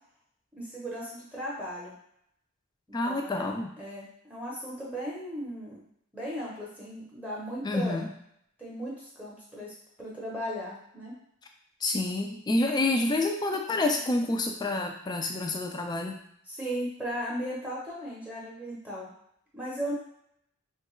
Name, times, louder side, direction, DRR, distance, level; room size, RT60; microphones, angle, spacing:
voice 1, 0.5-1.9 3.0-3.5 3.8-5.9 6.1-8.0 8.6-11.2 16.5-19.1 19.5-19.9, equal, 5° right, -6 dB, 0.7 m, -36 dB
voice 2, 2.9-3.7 7.6-8.1 11.8-16.2, left 2 dB, 20° left, 3 dB, 0.3 m, -28 dB
3.2 x 2.3 x 3.0 m, 0.71 s
head